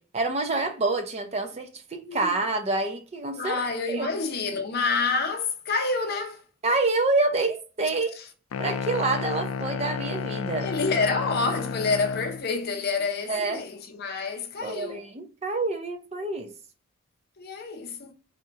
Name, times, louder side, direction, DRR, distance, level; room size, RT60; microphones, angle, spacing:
voice 1, 0.0-3.6 3.9-4.1 6.6-8.1 8.6-10.7 13.3-13.6 14.6-16.5, right 3 dB, 30° right, 0.5 m, -27 dB
voice 2, 2.1-2.4 3.3-6.4 8.2-8.3 10.6-15.0 17.4-18.1, left 4 dB, 45° left, 0.7 m, -28 dB
sound 1, 8.5-12.4, left 5 dB, 75° left, 0.3 m, -32 dB
4.2 x 2.7 x 2.4 m
head